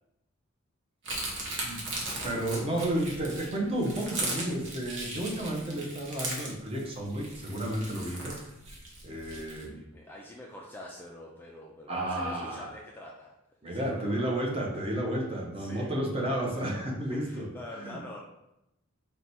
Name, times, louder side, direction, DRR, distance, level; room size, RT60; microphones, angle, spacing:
sound 1, 1.0-9.6, right 2 dB, 60° right, 1.0 m, -37 dB
voice 1, 2.2-8.4 9.0-9.8 11.9-12.7 13.6-17.5 17.8-18.0, right 1 dB, 30° right, -1 dB, 0.8 m, -32 dB
voice 2, 9.3-13.3 13.7-14.3 15.6-15.9 17.1-18.2, left 1 dB, 10° left, -2 dB, 0.4 m, -46 dB
4.6 x 2.2 x 4.1 m, 0.87 s
head